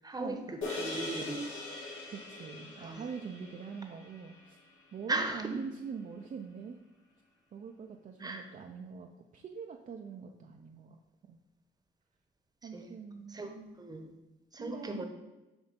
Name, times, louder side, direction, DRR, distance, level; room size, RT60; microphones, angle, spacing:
voice 1, 0.0-1.4 2.8-3.0 5.1-5.6 8.2-8.5 12.7-12.9 13.3-14.1 14.5-15.0, right 2 dB, 20° right, 4 dB, 0.9 m, -37 dB
sound 1, 0.6-5.2, left 2 dB, 80° left, 2.0 m, -42 dB
voice 2, 2.1-4.6 4.9-6.8 7.5-11.4 12.6-13.5 14.6-15.0, right 6 dB, 40° right, 2 dB, 0.5 m, -44 dB
7.9 x 2.7 x 5.2 m, 1.0 s
cardioid pair, 90°, 20 cm